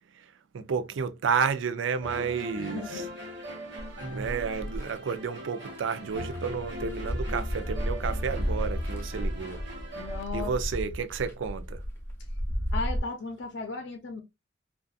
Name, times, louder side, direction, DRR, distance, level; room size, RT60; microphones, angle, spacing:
voice 1, 0.5-2.8 4.1-9.6 10.3-11.8, right 6 dB, 80° right, 0.4 m, -31 dB
sound 1, 2.0-10.2, equal, 65° right, 0.9 m, -40 dB
voice 2, 2.5-3.1 9.9-10.5 12.7-14.2, left 4 dB, 65° left, 0.5 m, -36 dB
sound 2, 3.8-5.0 5.7-5.8 6.1-13.0, equal, 15° left, 0.6 m, -32 dB
2.5 x 2.3 x 2.3 m
head